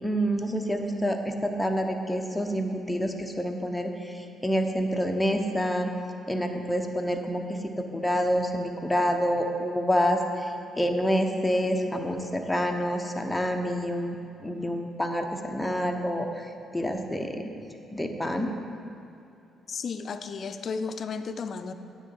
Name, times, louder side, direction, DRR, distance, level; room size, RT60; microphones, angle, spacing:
voice 1, 0.0-5.9 6.3-14.2 14.4-17.4 17.9-18.5, equal, 5° left, 3 dB, 0.8 m, -27 dB
voice 2, 19.7-21.7, left 5 dB, 55° left, 9 dB, 0.4 m, -33 dB
9.4 x 3.7 x 7.0 m, 2.6 s
cardioid pair, 90°, 0 cm